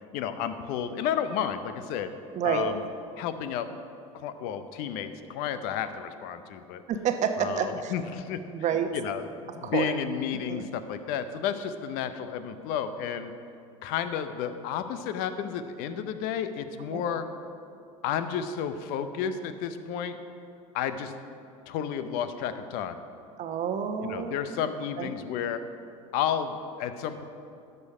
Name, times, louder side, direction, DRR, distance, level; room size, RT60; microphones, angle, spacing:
voice 1, 0.1-2.1 2.4-2.8 3.2-3.7 4.1-6.8 7.4-8.4 8.9-13.3 13.8-17.3 18.0-20.2 20.7-21.1 21.7-23.0 24.0-25.6 26.1-27.2, left 8 dB, 60° left, 10 dB, 0.7 m, -32 dB
voice 2, 2.3-2.7 6.9-7.9 8.5-8.9 9.6-9.9 10.5-10.6 16.9-17.0 23.4-24.6 25.0-25.1, right 8 dB, 45° right, 7 dB, 0.9 m, -29 dB
12.0 x 6.7 x 4.9 m, 2.6 s
hypercardioid pair, 80°, 17 cm